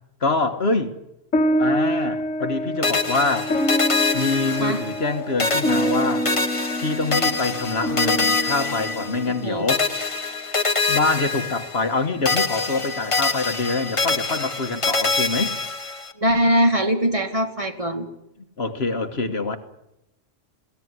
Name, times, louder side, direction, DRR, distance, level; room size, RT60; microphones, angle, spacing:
voice 1, 0.2-1.0 1.6-3.5 4.1-6.3 6.8-9.9 10.9-15.5 18.6-19.6, left 3 dB, 55° left, 7 dB, 1.7 m, -25 dB
sound 1, 1.3-10.0, equal, 80° left, 2.1 m, -26 dB
sound 2, 2.8-5.1 5.4-9.4 9.7-12.0 12.2-16.1, left 3 dB, 25° left, 1.2 m, -25 dB
voice 2, 4.4-4.8 9.3-9.7 16.2-18.1, equal, 25° right, 4 dB, 2.3 m, -22 dB
22.0 x 17.0 x 9.7 m, 0.85 s
omnidirectional pair, 1.3 m